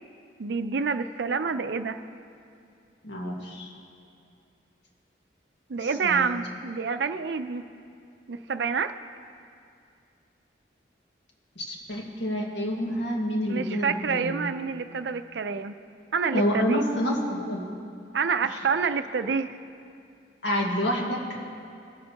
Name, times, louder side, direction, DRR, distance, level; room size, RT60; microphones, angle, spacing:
voice 1, 0.4-2.0 5.7-7.6 8.3-8.9 13.5-15.7 16.1-16.9 18.1-19.6, right 5 dB, 70° right, 10 dB, 0.5 m, -28 dB
voice 2, 1.4-1.8 3.0-3.7 5.8-6.4 11.6-14.4 16.3-17.6 18.4-18.7 20.4-21.2, equal, 75° left, -1 dB, 1.8 m, -28 dB
21.5 x 7.7 x 2.9 m, 2.5 s
head